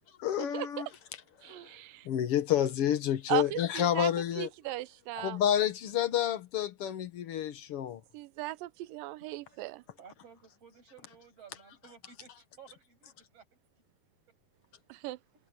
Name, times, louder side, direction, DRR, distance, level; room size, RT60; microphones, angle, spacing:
voice 1, 0.2-0.9 1.4-1.6 2.1-4.5 5.2-8.0, left 10 dB, 60° left, 1.7 m, -29 dB
voice 2, 1.4-2.1 3.3-4.1 4.4-5.4 8.1-9.8 14.9-15.2, right 15 dB, 85° right, 2.4 m, -37 dB
voice 3, 10.0-13.5, right 6 dB, 45° right, 8.1 m, -55 dB
omnidirectional pair, 3.9 m